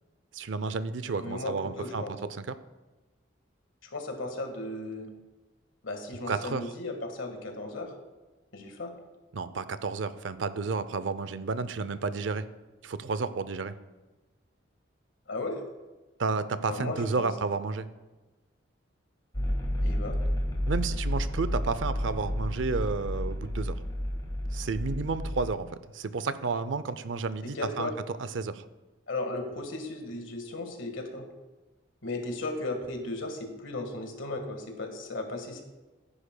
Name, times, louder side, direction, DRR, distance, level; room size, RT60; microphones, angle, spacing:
voice 1, 0.3-2.0 2.3-2.6 6.3-6.7 9.3-12.4 12.8-13.7 16.2-17.9 20.7-23.8 24.5-28.6, right 4 dB, 75° right, 14 dB, 0.5 m, -31 dB
voice 2, 1.2-2.1 3.9-5.1 5.8-7.9 8.5-8.9 15.3-15.6 16.7-17.3 19.8-20.1 27.5-27.9 29.1-31.2 32.0-35.6, left 2 dB, 85° left, 4 dB, 1.6 m, -35 dB
sound 1, 19.3-25.5, equal, 20° left, 1.5 m, -31 dB
15.0 x 10.0 x 2.2 m, 1.2 s
head